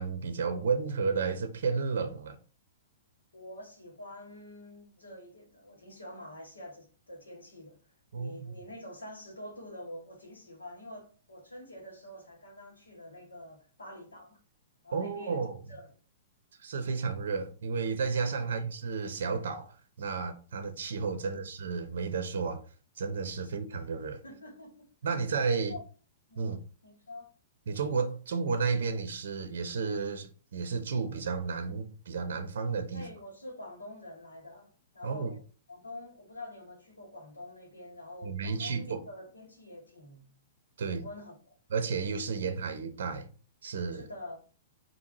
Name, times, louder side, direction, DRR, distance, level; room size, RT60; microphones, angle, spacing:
voice 1, 0.0-2.4 8.1-8.5 14.9-15.6 16.6-22.6 23.0-24.2 25.0-25.7 26.4-26.6 27.7-33.1 35.0-35.3 38.2-39.0 40.8-41.0 41.7-43.3 43.6-44.1, right 5 dB, 60° right, 0.6 m, -32 dB
voice 2, 3.3-7.8 8.1-14.4 14.8-15.8 18.4-18.6 21.2-21.5 23.4-23.5 24.2-24.9 25.5-25.8 26.3-27.3 32.9-35.4 35.7-40.3 40.9-41.3 43.9-44.4, left 1 dB, 80° left, 1.7 m, -46 dB
4.5 x 2.8 x 2.7 m
figure-of-eight pair, 110°, 0 cm